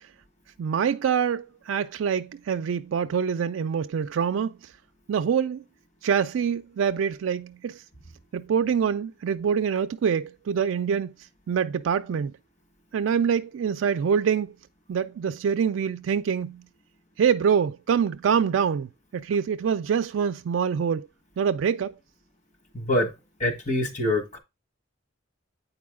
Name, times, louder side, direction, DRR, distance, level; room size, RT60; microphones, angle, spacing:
voice 1, 0.6-4.5 5.1-5.6 6.0-7.8 8.3-11.1 11.5-12.3 12.9-14.5 14.9-16.6 17.2-21.1 21.4-21.9, right 7 dB, 80° right, 0.4 m, -25 dB
voice 2, 22.7-23.1 23.4-24.4, left 1 dB, 40° left, 1.4 m, -25 dB
8.5 x 4.6 x 3.6 m
head